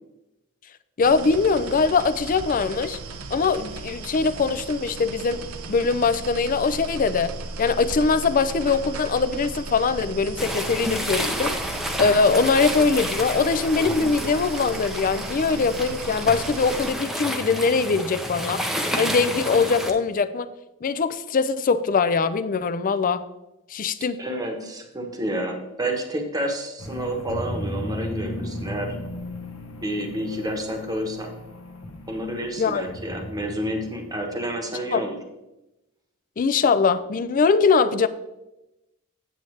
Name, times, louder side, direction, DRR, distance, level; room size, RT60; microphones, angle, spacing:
voice 1, 1.0-3.0 3.3-5.4 5.7-11.6 12.0-18.6 19.0-20.5 20.8-23.2 23.7-24.2 32.6-32.8 34.9-35.1 36.4-38.1, left 4 dB, 40° left, 13 dB, 0.4 m, -22 dB
sound 1, 1.0-16.9, right 3 dB, 90° right, 0.6 m, -36 dB
sound 2, 10.4-19.9, equal, ahead, 0.6 m, -30 dB
voice 2, 24.2-29.0 29.8-31.3 32.1-35.2, right 1 dB, 20° right, 3 dB, 1.1 m, -29 dB
sound 3, 26.8-34.5, left 1 dB, 70° left, 1.1 m, -36 dB
8.4 x 7.8 x 3.2 m, 0.95 s
head